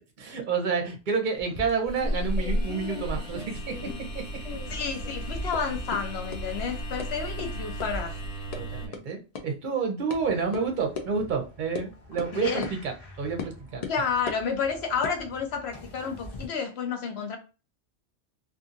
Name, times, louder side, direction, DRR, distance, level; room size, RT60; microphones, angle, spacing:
voice 1, 0.2-3.7 4.1-4.2 8.6-13.8, right 5 dB, 50° right, 0.7 m, -29 dB
mysounds-Lou-pot egyptien, 1.4-4.2 4.4-5.2 5.5-5.6 5.9-6.0 6.3-6.4 7.0-7.1 7.4-7.5 7.8-7.9 8.2-8.6 8.9-9.0 9.4-9.5 10.1-10.2 10.5-10.6 11.0-11.1 11.8-11.9 12.2-12.3 12.6-12.8 13.4-13.5 13.8-14.4 14.9-16.5, left 5 dB, 90° left, 0.3 m, -38 dB
sound 1, 1.9-8.9, right 1 dB, 5° right, 1.3 m, -33 dB
voice 2, 4.7-8.1 12.3-12.7 13.9-17.4, left 6 dB, 65° left, 0.8 m, -30 dB
sound 2, 10.1-16.5, left 1 dB, 35° left, 0.9 m, -47 dB
2.7 x 2.5 x 2.4 m
omnidirectional pair, 1.3 m